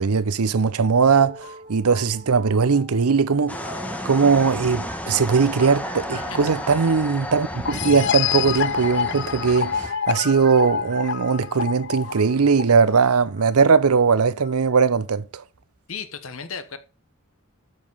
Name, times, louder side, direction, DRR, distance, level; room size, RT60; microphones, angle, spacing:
voice 1, 0.0-15.4, right 5 dB, 90° right, 0.7 m, -20 dB
sound 1, 1.1-7.0 8.0-14.9, right 2 dB, 45° right, 3.5 m, -44 dB
sound 2, 3.5-9.9, left 1 dB, 5° left, 1.1 m, -32 dB
voice 2, 6.1-6.6 15.9-16.8, left 6 dB, 70° left, 1.2 m, -35 dB
sound 3, 7.7-13.1, left 8 dB, 55° left, 0.4 m, -27 dB
12.5 x 5.1 x 5.5 m
head